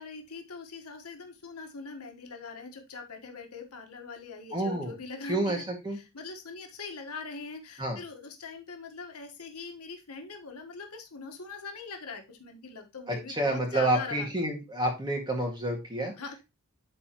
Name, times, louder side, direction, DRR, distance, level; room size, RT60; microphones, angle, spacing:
voice 1, 0.0-5.6 5.9-14.3 16.2-16.4, left 4 dB, 80° left, 3 dB, 1.4 m, -42 dB
voice 2, 4.5-4.9 5.3-6.0 7.8-8.0 13.1-16.1, right 1 dB, 20° right, 1 dB, 2.0 m, -29 dB
11.5 x 4.1 x 3.0 m, 0.25 s
head